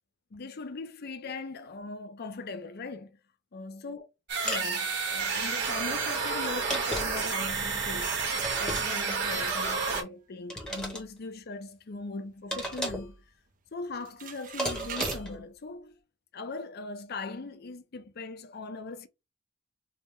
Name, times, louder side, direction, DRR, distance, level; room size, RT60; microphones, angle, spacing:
voice 1, 0.3-3.2 3.5-4.1 4.4-8.2 8.6-13.2 13.7-16.0 16.3-19.1, left 3 dB, 55° left, 0.6 m, -40 dB
sound 1, 4.3-10.0, right 4 dB, 60° right, 1.3 m, -30 dB
sound 2, 4.5-4.7 6.4-7.3 8.4-9.2 10.5-11.0 12.5-13.2 14.6-15.4, equal, 5° left, 1.0 m, -34 dB
sound 3, 8.3-9.6 10.1-10.2 10.7-10.8 11.2-11.5 12.0-13.1 13.3-13.7 13.9-15.2, right 8 dB, 45° right, 0.5 m, -42 dB
3.4 x 2.1 x 4.3 m
head